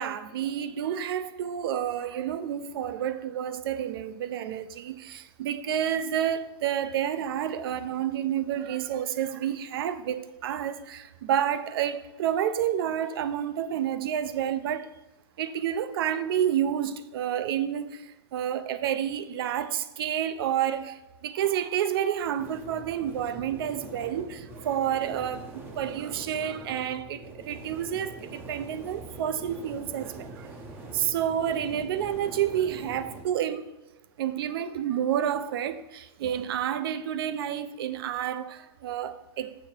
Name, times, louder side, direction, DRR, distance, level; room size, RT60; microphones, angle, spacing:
voice 1, 0.0-14.9 15.4-30.5 30.9-33.7 34.2-39.5, right 10 dB, 55° right, 0.6 m, -29 dB
sound 1, 22.4-33.2, right 2 dB, 15° right, 0.6 m, -44 dB
7.3 x 7.0 x 4.4 m
supercardioid pair, 175°, 15 cm